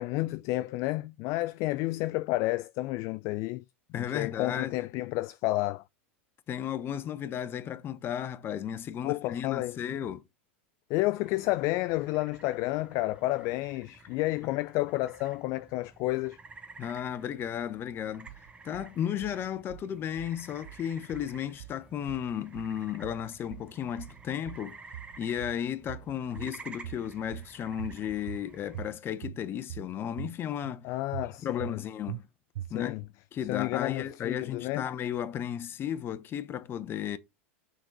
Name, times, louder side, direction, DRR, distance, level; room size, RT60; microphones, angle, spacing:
voice 1, 0.0-3.6 3.9-5.8 9.0-9.8 10.9-16.4 30.8-31.8 32.7-33.0 33.5-34.9, left 19 dB, 50° left, 0.3 m, -31 dB
voice 2, 3.9-4.8 6.5-10.2 16.8-18.3 18.6-24.8 25.2-30.9 31.4-32.3 32.7-33.0 33.3-37.2, left 9 dB, 35° left, 0.8 m, -34 dB
sound 1, 11.2-28.8, right 4 dB, 15° right, 1.2 m, -52 dB
sound 2, 18.3-18.9 19.2-19.9 20.2-20.9 21.1-21.8 22.1-22.8 23.0-23.7 24.0-24.7 24.9-25.6 25.9-26.6 26.8-27.5 27.8-28.4 28.7-29.4 29.7-30.3 30.6-30.8 31.1-31.8 32.1-32.2 32.6-33.1, right 13 dB, 75° right, 0.3 m, -42 dB
6.3 x 4.0 x 4.6 m
hypercardioid pair, 110°, 7 cm